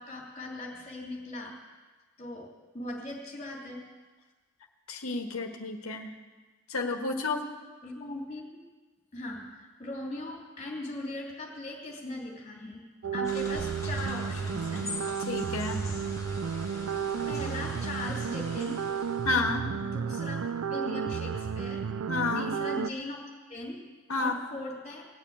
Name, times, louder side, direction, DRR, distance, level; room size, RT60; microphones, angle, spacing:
voice 1, 0.0-1.6 2.2-3.8 7.8-8.6 9.1-12.8 13.1-14.9 17.3-18.8 19.8-21.9 22.3-23.2 23.5-23.8 24.2-25.1, left 2 dB, 30° left, -1 dB, 3.0 m, -39 dB
voice 2, 4.9-6.1 6.7-7.4 15.3-15.8 19.2-19.7 22.1-22.5 24.1-24.4, left 3 dB, 85° left, 3 dB, 1.4 m, -30 dB
sound 1, 13.0-22.9, right 6 dB, 75° right, 0.4 m, -32 dB
sound 2, 13.2-19.5, left 3 dB, 15° left, 1.5 m, -43 dB
18.0 x 7.2 x 8.7 m, 1.3 s
head